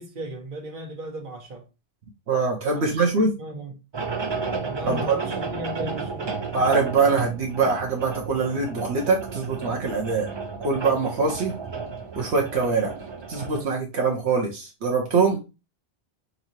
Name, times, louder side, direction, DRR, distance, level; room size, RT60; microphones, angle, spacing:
voice 1, 0.0-1.6 2.7-2.9 3.4-3.8 4.6-6.3, equal, 50° right, 1.3 m, -36 dB
voice 2, 2.3-3.3 4.9-5.2 6.5-10.3 10.6-11.5 12.2-12.9 13.3-15.4, right 4 dB, 75° right, 1.1 m, -23 dB
sound 1, 3.9-13.6, right 4 dB, 30° right, 0.5 m, -33 dB
5.5 x 3.0 x 2.7 m
omnidirectional pair, 1.1 m